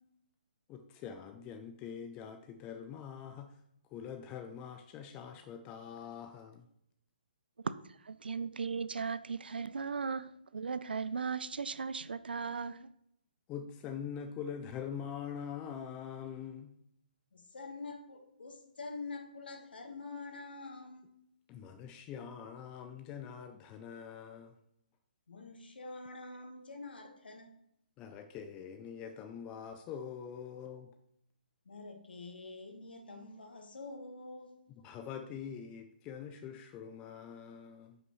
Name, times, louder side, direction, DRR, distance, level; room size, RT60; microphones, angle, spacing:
voice 1, 0.7-3.5 3.9-6.6 12.5-12.6 13.5-16.7 21.5-24.5 28.0-30.9 34.8-38.0, left 8 dB, 20° left, 0.4 m, -44 dB
voice 2, 8.1-12.9, right 5 dB, 85° right, 0.4 m, -37 dB
voice 3, 17.3-21.1 25.3-27.6 31.6-34.5, left 3 dB, 80° left, 1.4 m, -46 dB
9.4 x 5.6 x 3.1 m
hypercardioid pair, 150°, 5 cm